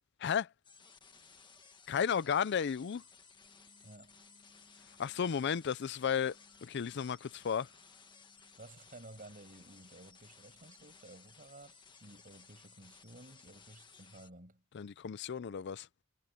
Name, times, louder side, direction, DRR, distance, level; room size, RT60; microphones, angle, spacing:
voice 1, 0.2-0.5 1.9-3.0 5.0-6.4 6.6-7.7 14.7-15.9, left 7 dB, 55° left, 0.4 m, -33 dB
sound 1, 0.6-14.3, left 5 dB, 20° left, 1.6 m, -59 dB
sound 2, 3.3-5.4 6.0-8.7 9.2-11.5, equal, 20° right, 6.9 m, -71 dB
voice 2, 3.8-4.1 8.6-14.6, right 2 dB, 40° right, 6.8 m, -54 dB
head